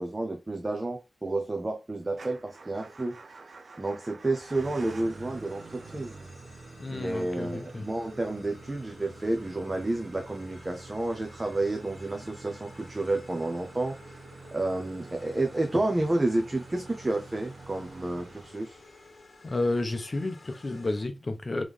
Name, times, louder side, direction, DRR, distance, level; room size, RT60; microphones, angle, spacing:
voice 1, 0.0-3.2 3.8-6.1 6.9-18.8, right 2 dB, 25° right, 0.7 m, -30 dB
Motor vehicle (road) / Engine starting / Idling, 2.1-19.1, right 3 dB, 60° right, 0.5 m, -47 dB
sound 1, 4.6-21.0, left 3 dB, 60° left, 1.1 m, -54 dB
voice 2, 6.8-7.8 19.4-21.6, left 2 dB, 40° left, 0.8 m, -31 dB
3.6 x 3.1 x 3.5 m
wide cardioid pair, 90°, 0 cm